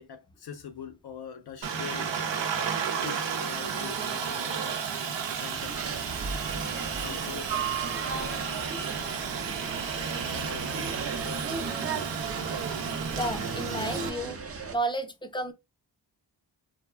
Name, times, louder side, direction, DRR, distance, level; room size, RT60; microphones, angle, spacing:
voice 1, 0.0-2.1 3.0-4.8 5.2-5.8 7.0-7.5 8.1-8.8 9.9-10.9, left 7 dB, 60° left, 0.5 m, -44 dB
Aircraft, 1.6-14.1, right 6 dB, 75° right, 0.6 m, -32 dB
sound 1, 5.5-14.8, right 4 dB, 35° right, 0.5 m, -37 dB
voice 2, 13.1-14.4 14.7-15.5, right 1 dB, 10° left, 0.5 m, -32 dB
2.3 x 2.0 x 3.1 m
cardioid pair, 60°, 44 cm